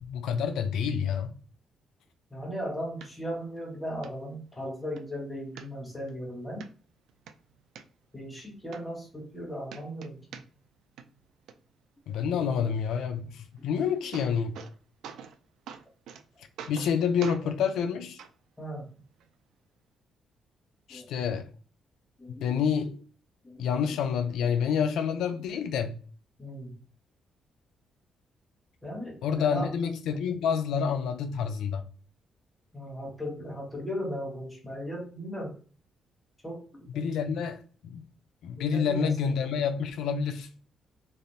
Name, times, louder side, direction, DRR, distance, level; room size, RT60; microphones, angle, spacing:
voice 1, 0.0-1.3 12.1-14.6 16.7-18.2 20.9-21.5 22.4-23.0 23.6-26.0 29.2-31.8 36.9-38.0 38.4-40.5, left 7 dB, 85° left, 0.4 m, -28 dB
voice 2, 2.3-6.7 8.1-10.2 17.4-17.5 18.6-18.9 20.9-21.1 22.2-22.5 23.4-24.0 26.4-26.8 28.8-29.9 32.7-35.6 36.4-37.1 38.5-39.3, equal, 10° left, 1.2 m, -37 dB
sound 1, 3.0-3.1 3.6-3.7 4.0-4.1 4.6-5.1 5.6-6.1 6.6-6.7 7.1-7.8 8.4-8.5 8.7-9.4 9.7-10.7 11.0-11.5 13.6-13.7 13.9-14.7 15.0-15.4 15.7-16.2 16.6-16.9 17.2-17.4 18.2-18.3 19.2-19.3, right 7 dB, 85° right, 0.3 m, -44 dB
3.3 x 2.4 x 2.6 m
cardioid pair, 105°, 0 cm